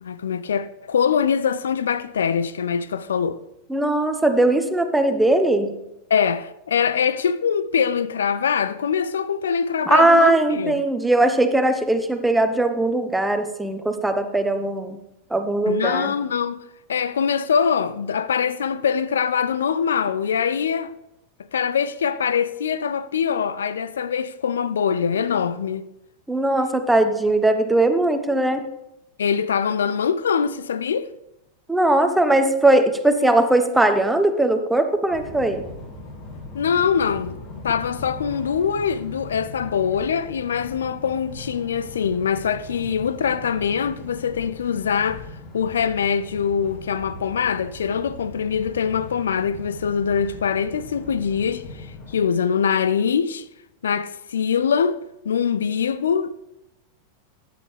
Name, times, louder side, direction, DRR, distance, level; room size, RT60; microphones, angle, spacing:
voice 1, 0.0-3.4 6.1-10.8 15.7-16.6 16.9-20.9 21.5-25.8 29.2-31.1 36.5-45.2 45.5-53.5 53.8-56.3, left 7 dB, 65° left, 0.4 m, -23 dB
voice 2, 3.7-5.7 9.9-15.0 15.3-16.1 26.3-28.6 31.7-35.6, right 2 dB, 5° right, 1.0 m, -19 dB
sound 1, 35.1-52.2, left 2 dB, 40° left, 2.6 m, -40 dB
14.5 x 9.4 x 3.3 m
figure-of-eight pair, 90°, 0 cm